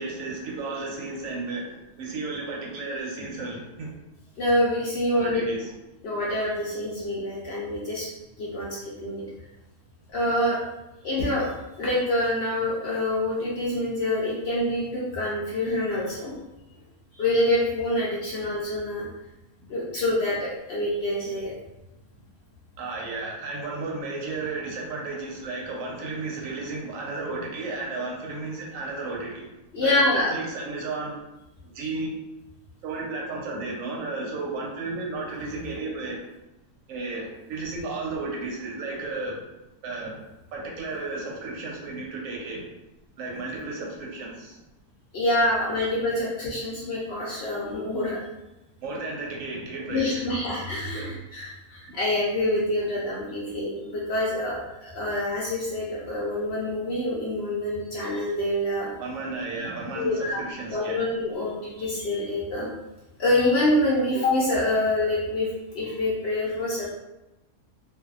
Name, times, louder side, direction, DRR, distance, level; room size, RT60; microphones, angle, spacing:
voice 1, 0.0-3.9 5.1-5.7 22.8-29.4 29.8-31.1 31.6-32.1 32.8-36.3 36.9-39.4 39.8-40.2 40.5-42.6 43.2-44.6 48.8-50.2 50.9-51.1 51.8-51.9 59.0-61.1, right 3 dB, 65° right, -2 dB, 0.9 m, -33 dB
voice 2, 4.4-5.5 6.0-8.1 8.4-8.7 9.0-9.2 10.1-10.6 11.0-11.5 11.8-16.3 17.1-19.0 19.7-21.5 29.7-30.3 45.1-48.2 49.9-58.9 59.9-60.4 60.7-62.7 63.2-65.5 65.7-66.9, left 1 dB, 70° left, -6 dB, 0.6 m, -26 dB
2.6 x 2.3 x 2.3 m, 0.96 s
omnidirectional pair, 1.7 m